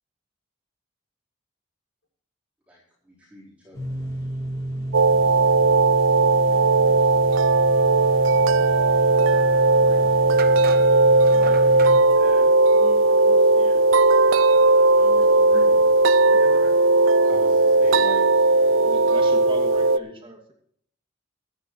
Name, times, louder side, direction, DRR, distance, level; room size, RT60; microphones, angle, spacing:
voice 1, 3.0-3.9 5.0-6.2 6.5-7.2 17.3-19.2, equal, 5° right, -8 dB, 4.3 m, -45 dB
sound 1, 3.7-12.0, right 1 dB, 15° left, 3.4 m, -30 dB
sound 2, 4.9-20.0, right 3 dB, 80° right, 0.6 m, -17 dB
voice 2, 9.2-13.8 14.9-15.9 16.2-16.7, left 1 dB, 80° left, 1 dB, 6.7 m, -44 dB
sound 3, 10.4-12.0, right 4 dB, 50° right, 1.1 m, -35 dB
voice 3, 18.8-20.5, right 1 dB, 25° right, 1 dB, 2.5 m, -38 dB
23.5 x 9.6 x 3.2 m, 0.67 s
head